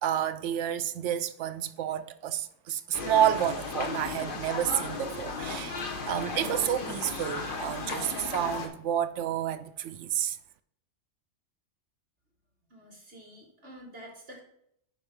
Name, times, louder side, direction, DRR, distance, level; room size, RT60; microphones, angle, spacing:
voice 1, 0.0-10.4, right 10 dB, 80° right, 0.9 m, -30 dB
sound 1, 2.9-8.7, left 4 dB, 45° left, 1.1 m, -35 dB
voice 2, 12.7-14.4, equal, 55° right, 2.1 m, -48 dB
9.4 x 5.4 x 3.6 m
omnidirectional pair, 1.2 m